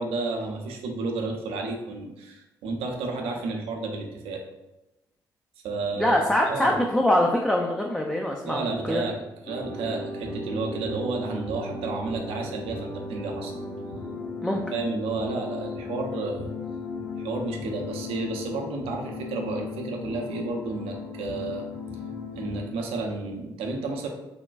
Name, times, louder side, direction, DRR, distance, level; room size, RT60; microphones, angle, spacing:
voice 1, 0.0-4.4 5.6-6.2 6.5-6.8 8.4-13.5 14.7-16.4 17.2-21.6 22.3-24.1, right 3 dB, 70° right, 1 dB, 0.5 m, -31 dB
voice 2, 6.0-9.0 14.4-14.6, left 1 dB, 5° left, 0 dB, 0.3 m, -23 dB
sound 1, 9.4-22.6, left 3 dB, 60° left, 1.1 m, -36 dB
3.4 x 2.2 x 2.3 m, 0.97 s
hypercardioid pair, 45°, 10 cm